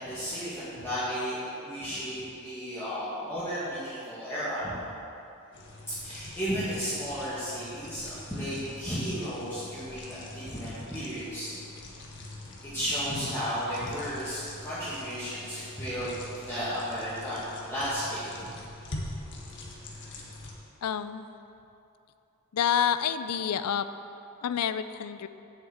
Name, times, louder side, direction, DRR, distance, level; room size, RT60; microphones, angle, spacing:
voice 1, 0.0-4.8 5.9-11.5 12.6-18.5, equal, 10° left, -14 dB, 2.3 m, -34 dB
Ramen Being Stirred, 5.5-20.5, left 2 dB, 55° left, 1.5 m, -44 dB
voice 2, 20.8-21.2 22.5-23.9 24.4-25.3, left 8 dB, 85° left, 12 dB, 0.4 m, -28 dB
7.4 x 7.1 x 8.0 m, 2.8 s
head